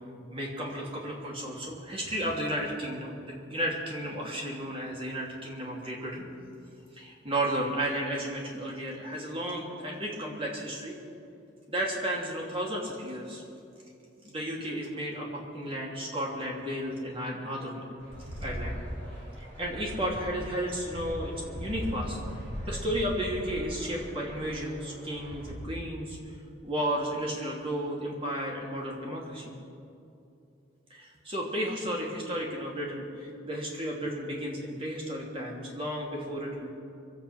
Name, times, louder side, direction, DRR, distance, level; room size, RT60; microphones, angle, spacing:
voice 1, 0.3-6.3 6.9-11.0 11.7-13.4 14.2-17.9 18.4-18.8 19.4-22.2 22.7-26.4 26.6-29.5 30.9-36.7, equal, 30° right, -2 dB, 2.8 m, -33 dB
sound 1, 18.0-25.5, equal, 60° right, 4.4 m, -39 dB
25.5 x 8.5 x 6.1 m, 2.7 s
head